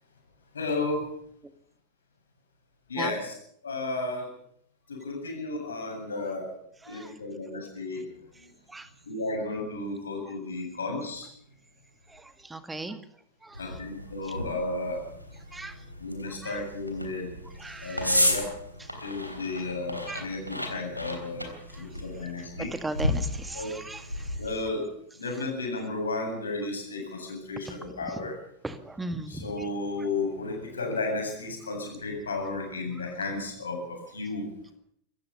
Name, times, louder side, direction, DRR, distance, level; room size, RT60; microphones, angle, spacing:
voice 1, 0.5-1.0 2.9-3.3 3.6-4.3 4.9-6.5 6.8-8.0 9.1-11.3 13.6-15.0 16.0-17.3 17.8-18.5 19.0-21.5 21.7-22.7 23.5-23.7 24.4-24.8 25.2-28.4 29.3-34.5, left 2 dB, 70° left, 2 dB, 8.0 m, -33 dB
voice 2, 12.1-13.0 13.4-13.9 15.5-15.8 16.4-16.6 17.6-18.3 20.1-20.3 21.7-21.9 22.8-24.3 27.7-28.2 28.6-29.4, right 2 dB, 10° right, 11 dB, 1.9 m, -38 dB
sound 1, 13.5-24.5, left 1 dB, 90° left, 3.5 m, -33 dB
25.5 x 15.0 x 7.0 m, 0.68 s
figure-of-eight pair, 90°, 0 cm